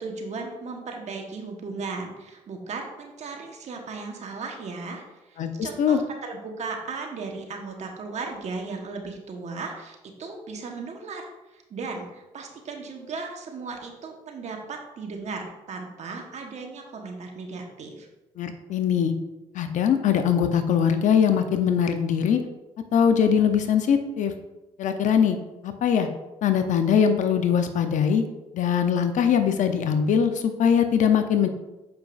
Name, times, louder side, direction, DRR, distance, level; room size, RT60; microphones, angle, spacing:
voice 1, 0.0-18.1, right 4 dB, 55° right, 2 dB, 1.2 m, -36 dB
voice 2, 5.4-6.0 18.4-19.1 19.5-22.4 22.9-24.3 24.8-25.4 25.6-26.1 26.4-28.2 28.5-31.5, left 7 dB, 65° left, 8 dB, 0.7 m, -21 dB
6.9 x 5.2 x 2.6 m, 1.0 s
supercardioid pair, 60°, 14 cm